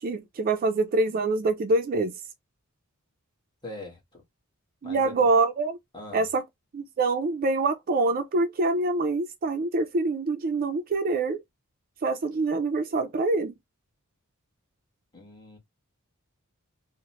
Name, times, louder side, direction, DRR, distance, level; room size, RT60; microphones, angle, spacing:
voice 1, 0.0-2.2 4.8-5.8 6.1-6.4 6.7-11.4 12.0-13.5, right 3 dB, 40° right, 0.4 m, -25 dB
voice 2, 3.6-4.2 4.8-5.3 5.9-6.3 15.1-15.6, left 2 dB, 20° left, 1.2 m, -41 dB
3.0 x 2.0 x 2.8 m
head